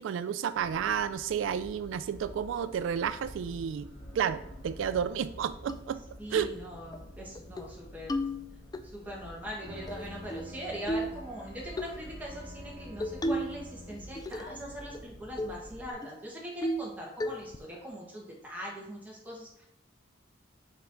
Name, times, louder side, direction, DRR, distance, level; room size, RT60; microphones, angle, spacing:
voice 1, 0.0-6.0 6.3-6.5, right 8 dB, 85° right, 13 dB, 0.3 m, -31 dB
sound 1, 0.6-15.9, equal, 35° left, 1.8 m, -49 dB
sound 2, 5.7-5.8 6.4-6.6 6.9-7.0 7.4-7.7 8.1-8.8 9.9-10.5 10.9-11.2 11.8-12.0 13.0-13.6 13.9-14.6 14.9-15.0 15.4-15.6 16.0-16.1 16.6-16.9 17.2-17.6, equal, 20° left, 0.3 m, -33 dB
voice 2, 6.2-8.1 8.9-19.7, equal, 10° right, -4 dB, 1.6 m, -41 dB
Bowed string instrument, 9.4-14.5, left 1 dB, 25° right, 1.9 m, -49 dB
5.8 x 4.5 x 3.8 m, 0.78 s
head